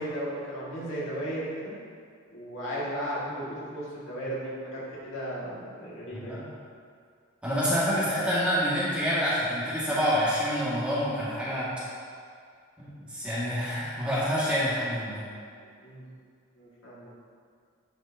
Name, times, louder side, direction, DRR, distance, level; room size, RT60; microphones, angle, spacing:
voice 1, 0.0-1.7 2.3-6.4 14.6-14.8 15.8-16.0 16.6-17.1, equal, 60° left, -7 dB, 2.0 m, -35 dB
voice 2, 6.1-6.4 7.4-11.7 12.8-15.2, equal, 5° right, -11 dB, 2.0 m, -27 dB
10.5 x 6.9 x 2.8 m, 2.2 s
head